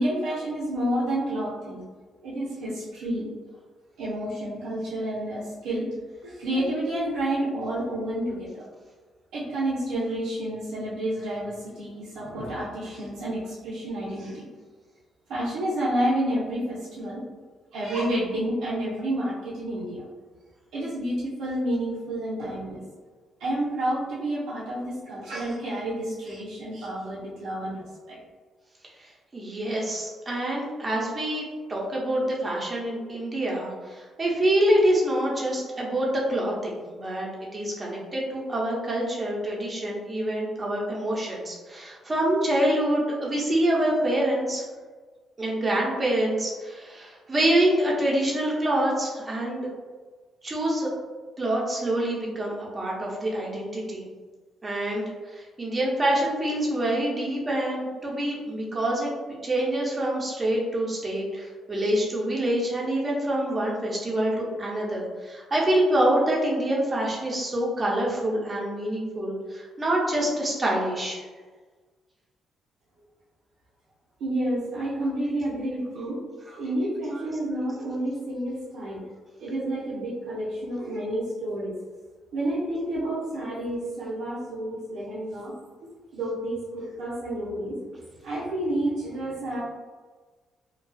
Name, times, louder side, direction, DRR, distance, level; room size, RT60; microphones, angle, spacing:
voice 1, 0.0-1.8 2.2-3.3 4.0-5.9 6.2-8.6 9.3-14.4 15.3-17.2 17.7-20.1 20.7-22.8 23.4-28.2 74.2-76.2 76.6-79.0 79.4-81.7 82.3-85.5 86.1-87.8 88.2-89.6, right 1 dB, 80° right, -9 dB, 0.6 m, -29 dB
voice 2, 29.0-44.6 45.4-49.7 50.4-50.9 51.4-54.0 54.6-71.2 76.5-76.6 77.1-77.2, right 1 dB, 30° right, -3 dB, 0.7 m, -26 dB
2.4 x 2.3 x 2.3 m, 1.4 s
cardioid pair, 90°, 0 cm